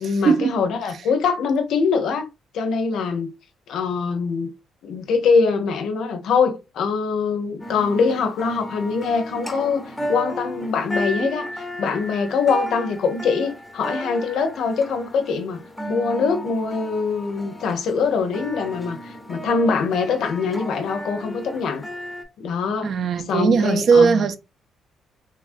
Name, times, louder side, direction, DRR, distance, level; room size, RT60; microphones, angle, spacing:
voice 1, 0.0-2.3 2.5-3.3 3.7-4.5 4.8-15.6 15.9-21.8 22.4-22.9 23.3-24.2, left 5 dB, 80° left, 0.6 m, -23 dB
sound 1, 7.6-22.2, equal, 10° left, 0.5 m, -33 dB
voice 2, 22.8-24.4, right 5 dB, 60° right, 0.3 m, -18 dB
3.1 x 2.4 x 2.4 m
cardioid pair, 90°, 0 cm